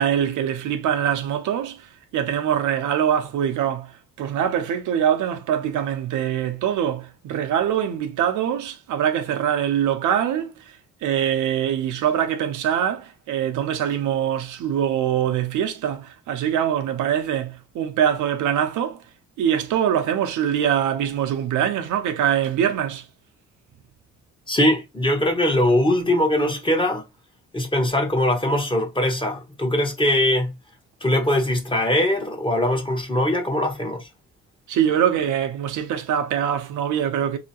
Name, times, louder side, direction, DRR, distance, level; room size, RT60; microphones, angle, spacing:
voice 1, 0.0-19.0 19.4-23.1 34.7-37.4, right 9 dB, 80° right, 0.8 m, -23 dB
voice 2, 24.5-27.0 27.5-30.6 31.0-34.1, left 1 dB, 15° left, 1.1 m, -21 dB
4.2 x 2.8 x 2.9 m
cardioid pair, 90°, 30 cm